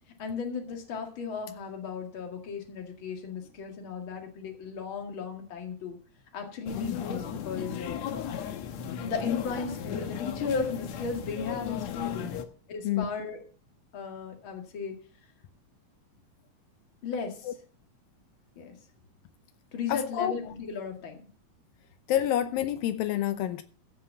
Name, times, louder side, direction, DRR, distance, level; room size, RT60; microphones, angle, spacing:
voice 1, 0.2-6.0 6.3-8.0 9.0-12.2 12.7-13.4 13.9-15.0 17.0-17.5 18.6-18.7 19.7-21.3, left 5 dB, 40° left, 2.4 m, -35 dB
sound 1, 6.7-12.4, left 8 dB, 65° left, 1.9 m, -35 dB
voice 2, 12.1-12.5 12.8-13.1 17.4-17.5 19.9-20.5 22.1-23.6, left 11 dB, 80° left, 2.5 m, -28 dB
15.0 x 5.6 x 7.2 m
omnidirectional pair, 4.0 m